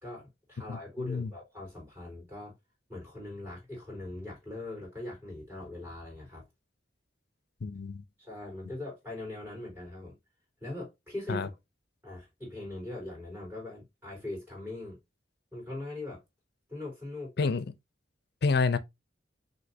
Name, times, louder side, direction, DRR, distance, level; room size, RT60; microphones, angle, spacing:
voice 1, 0.0-2.5 2.9-6.4 8.2-10.1 10.6-11.5 12.0-15.0 15.5-16.2 16.7-17.5, left 2 dB, 10° right, 3.2 m, -41 dB
voice 2, 0.7-1.3 7.6-8.0 11.3-11.5 17.4-17.7 18.4-18.8, left 4 dB, 60° left, 0.5 m, -28 dB
6.1 x 2.8 x 2.7 m
head